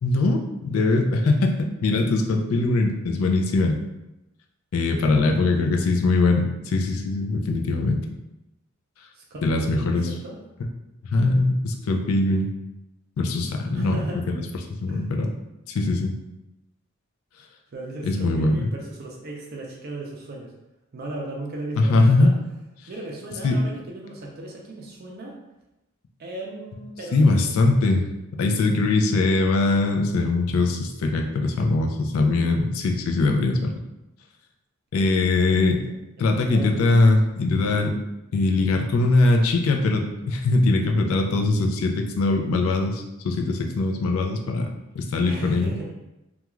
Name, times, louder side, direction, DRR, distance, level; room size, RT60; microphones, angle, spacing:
voice 1, 0.0-3.8 4.7-8.0 9.4-10.0 11.0-12.5 13.2-14.4 14.8-15.3 15.7-16.1 18.0-18.7 21.8-22.3 23.4-23.6 27.1-28.0 28.3-33.7 34.9-35.8 36.2-38.0 38.3-45.7, left 2 dB, 80° left, 2 dB, 0.4 m, -21 dB
voice 2, 9.1-10.4 13.7-14.2 14.9-15.1 17.7-20.5 20.9-22.6 22.9-25.4 26.2-27.5 35.5-35.8 36.2-36.9 45.2-45.9, right 2 dB, 45° right, -1 dB, 0.4 m, -37 dB
2.3 x 2.2 x 3.0 m, 0.95 s
head